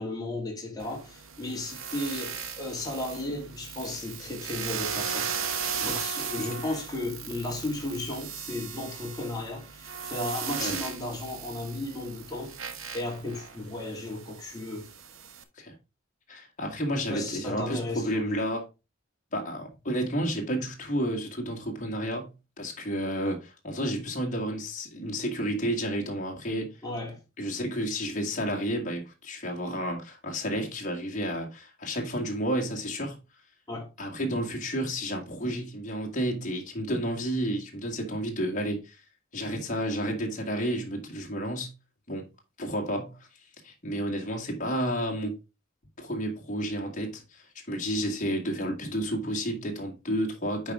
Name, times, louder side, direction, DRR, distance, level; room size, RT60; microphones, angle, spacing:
voice 1, 0.0-12.6 12.9-14.9 17.1-18.3 26.8-27.2 33.7-33.9 47.9-48.3, left 2 dB, 20° left, 2.5 m, -35 dB
sound 1, 0.8-15.4, right 7 dB, 80° right, 1.0 m, -37 dB
voice 2, 16.3-18.7 19.3-22.3 22.6-26.8 27.4-33.2 34.0-39.0 39.3-41.7 42.1-42.3 42.6-43.3 43.6-45.4 46.0-50.7, equal, 40° left, 2.0 m, -31 dB
8.5 x 4.9 x 3.7 m
head